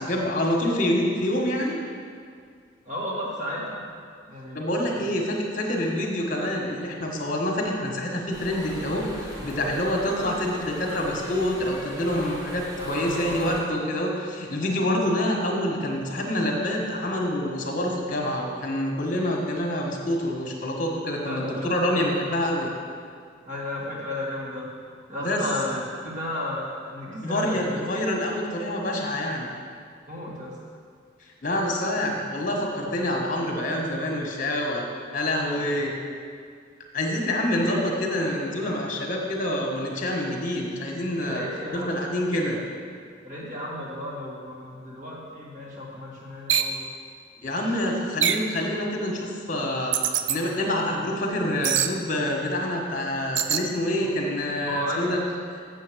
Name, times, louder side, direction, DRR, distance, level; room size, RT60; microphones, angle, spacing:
voice 1, 0.0-1.8 4.5-22.7 25.2-25.5 27.2-29.5 31.4-34.9 35.1-35.9 36.9-41.4 41.7-42.6 47.4-50.0 50.3-55.2, left 1 dB, 45° left, 0 dB, 1.4 m, -27 dB
voice 2, 2.9-3.8 4.3-4.9 12.8-13.5 13.9-14.0 21.2-22.1 23.4-24.7 25.1-27.8 30.1-30.5 35.6-35.7 37.7-37.8 41.2-41.9 43.2-46.9 54.0-54.1 54.6-55.1, left 1 dB, 40° right, -5 dB, 2.2 m, -33 dB
sound 1, 8.3-13.6, equal, 20° right, 1.7 m, -38 dB
sound 2, 46.5-46.8 48.2-48.5 49.9-50.4 51.6-51.9 53.4-53.7, right 9 dB, 70° right, 0.5 m, -23 dB
7.6 x 7.4 x 6.2 m, 2.2 s
head